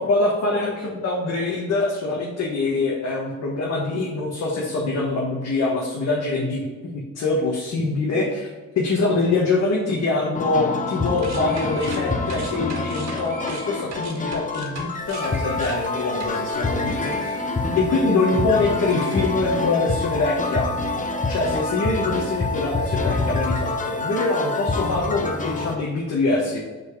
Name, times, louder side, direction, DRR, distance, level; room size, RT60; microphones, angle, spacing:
voice 1, 0.0-8.5 8.7-20.7 21.3-26.6, left 3 dB, 60° left, -3 dB, 1.5 m, -24 dB
sound 1, 10.3-25.8, left 3 dB, 25° left, 0.8 m, -26 dB
sound 2, 11.0-18.4 18.7-19.9, right 3 dB, 60° right, 1.7 m, -40 dB
5.4 x 4.6 x 4.9 m, 1.3 s
cardioid pair, 90°, 30 cm